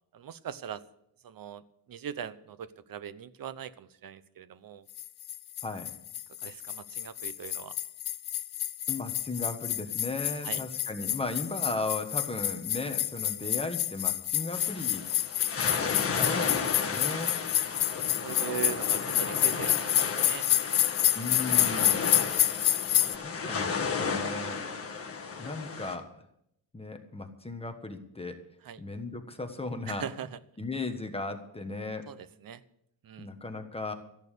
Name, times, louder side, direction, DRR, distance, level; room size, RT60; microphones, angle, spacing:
voice 1, 0.1-0.8 1.2-1.6 1.9-4.9 6.4-7.8 10.4-10.6 18.2-19.8 20.2-20.5 21.7-22.0 28.6-28.8 29.9-30.4 32.1-32.6 33.0-33.3, right 9 dB, 50° right, 15 dB, 0.8 m, -40 dB
sound 1, 5.0-23.2, left 12 dB, 55° left, 0.7 m, -29 dB
voice 2, 8.9-15.0 16.1-17.3 21.1-22.0 23.1-24.6 25.4-26.1 26.7-28.4 28.8-30.1 30.6-32.1 33.2-33.9, left 3 dB, 15° left, 5 dB, 1.3 m, -36 dB
sound 2, 14.5-26.0, left 5 dB, 30° left, 1.7 m, -33 dB
14.0 x 11.0 x 6.7 m, 0.74 s
wide cardioid pair, 160°, 45 cm